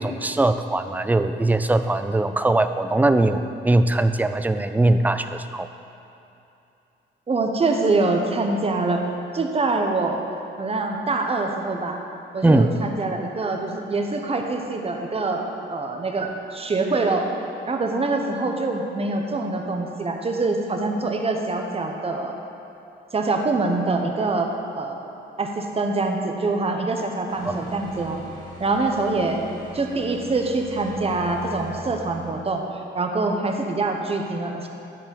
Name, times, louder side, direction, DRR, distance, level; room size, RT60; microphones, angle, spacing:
voice 1, 0.0-5.7 12.4-12.7 27.4-27.5, right 2 dB, 10° right, 9 dB, 0.4 m, -20 dB
voice 2, 7.3-9.0 9.3-10.2 10.6-12.0 12.3-17.3 17.7-22.4 23.1-25.0 25.4-28.2 28.6-29.5 29.7-34.7, right 3 dB, 30° right, 3 dB, 0.9 m, -25 dB
sound 1, 27.3-32.4, equal, 20° left, 2.1 m, -41 dB
10.5 x 4.4 x 5.3 m, 2.8 s
cardioid pair, 90°, 20 cm